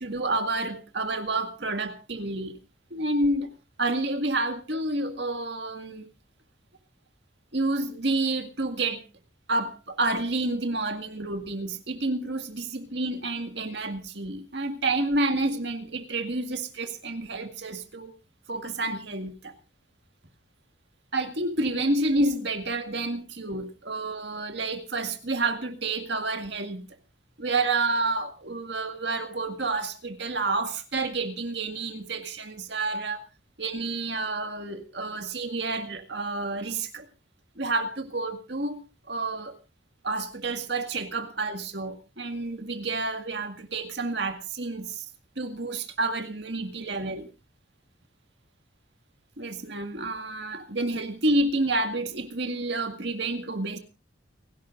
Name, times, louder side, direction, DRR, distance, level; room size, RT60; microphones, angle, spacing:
voice 1, 0.0-2.6 2.9-3.5 3.8-6.1 7.5-9.0 9.5-18.1 18.5-19.5 21.1-26.9 27.4-33.2 33.6-37.1 37.6-39.5 40.0-45.1 45.4-47.3 49.4-53.8, right 2 dB, 60° right, 6 dB, 2.0 m, -29 dB
29.5 x 11.5 x 2.6 m, 0.29 s
head